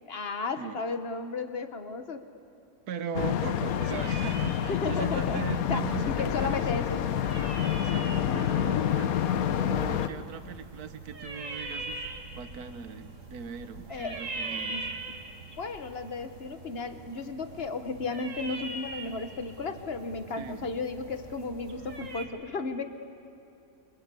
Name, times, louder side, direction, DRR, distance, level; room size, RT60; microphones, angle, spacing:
voice 1, 0.1-2.3 4.7-7.0 13.9-14.2 14.7-14.8 15.6-22.8, left 4 dB, 40° left, 8 dB, 1.2 m, -34 dB
voice 2, 2.9-6.8 7.8-9.2 9.7-14.8 20.4-20.7, right 7 dB, 65° right, 10 dB, 1.6 m, -39 dB
sound 1, 3.1-10.1, left 9 dB, 65° left, 1.2 m, -28 dB
sound 2, 3.6-22.2, right 3 dB, 50° right, 2.2 m, -42 dB
26.0 x 24.0 x 8.4 m, 2.7 s
omnidirectional pair, 1.8 m